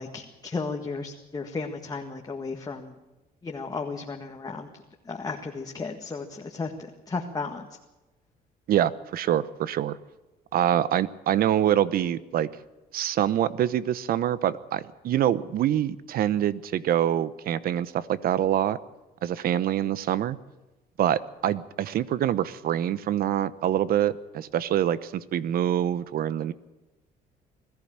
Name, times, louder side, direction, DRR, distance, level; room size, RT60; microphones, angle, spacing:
voice 1, 0.0-2.9 3.4-4.7 5.1-6.7 7.1-7.6, left 4 dB, 20° left, 2 dB, 1.7 m, -34 dB
voice 2, 8.7-10.0 10.5-12.5 12.9-18.8 19.2-20.4 21.0-26.5, right 11 dB, 60° right, 17 dB, 0.9 m, -25 dB
21.5 x 14.5 x 8.9 m, 1.1 s
cardioid pair, 110°, 17 cm